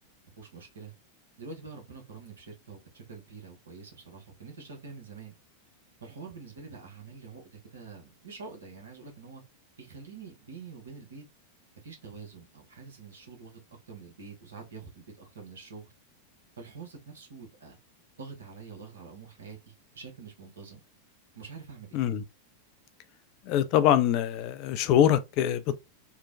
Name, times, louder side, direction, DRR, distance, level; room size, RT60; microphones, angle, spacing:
voice 1, 0.4-0.9 1.4-5.4 6.0-9.4 9.8-11.2 11.8-13.6 13.9-15.9 16.6-17.8 18.2-20.8 21.3-22.0, right 5 dB, 70° right, 0.9 m, -46 dB
voice 2, 21.9-22.2 23.5-25.7, left 10 dB, 40° left, 0.3 m, -24 dB
3.0 x 2.1 x 2.5 m
figure-of-eight pair, 90°, 0 cm